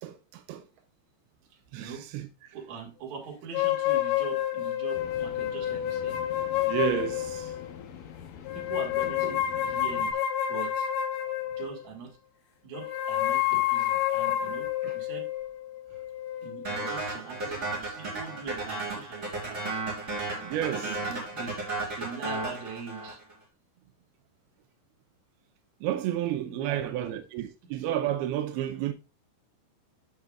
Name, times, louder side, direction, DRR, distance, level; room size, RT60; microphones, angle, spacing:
voice 1, 0.0-0.7 1.7-2.5 6.7-7.6 14.8-15.0 20.4-21.2 25.8-28.9, right 11 dB, 90° right, 2.6 m, -31 dB
voice 2, 2.5-6.2 8.5-10.2 10.5-10.9 11.5-12.2 12.6-15.3 16.4-19.6 20.8-21.6 21.9-23.2 26.3-27.2, right 6 dB, 55° right, 2.9 m, -42 dB
sound 1, 3.5-7.7 8.5-11.9 12.7-17.1, left 12 dB, 85° left, 2.8 m, -29 dB
sound 2, 4.9-10.1, left 8 dB, 65° left, 2.0 m, -45 dB
sound 3, 16.6-23.3, right 2 dB, 20° right, 4.1 m, -34 dB
14.0 x 5.5 x 2.4 m
omnidirectional pair, 4.4 m